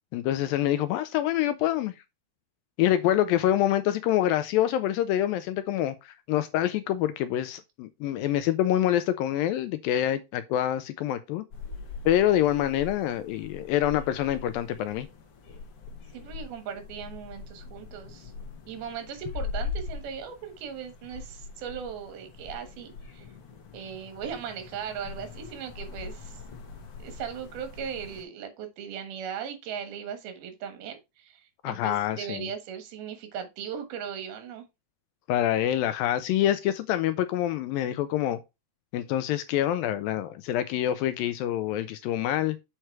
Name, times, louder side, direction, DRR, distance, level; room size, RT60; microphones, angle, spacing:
voice 1, 0.1-1.9 2.8-11.4 12.1-15.1 31.6-32.5 35.3-38.4 38.9-42.6, left 12 dB, 80° left, 2.2 m, -26 dB
sound 1, 11.5-28.2, left 4 dB, 55° left, 1.7 m, -41 dB
voice 2, 16.1-18.3 18.7-23.3 23.7-26.4 27.0-34.6, right 7 dB, 75° right, 3.2 m, -38 dB
7.7 x 4.7 x 4.5 m
omnidirectional pair, 4.5 m